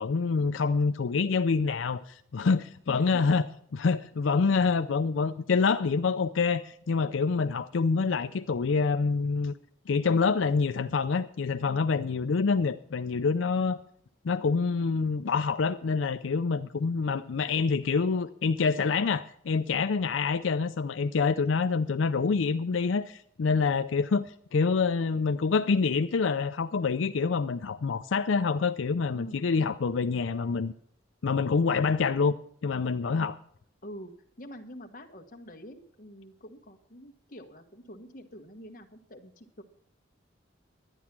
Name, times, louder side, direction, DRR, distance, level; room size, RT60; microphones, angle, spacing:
voice 1, 0.0-3.5 3.7-9.5 9.9-13.8 14.2-24.2 24.5-30.7 31.2-32.4 32.6-33.4, left 4 dB, 85° left, 0.5 m, -26 dB
voice 2, 2.9-3.2 10.1-10.2 29.1-29.5 33.8-34.1 34.4-39.6, equal, 45° left, 1.3 m, -46 dB
11.5 x 9.9 x 5.9 m
head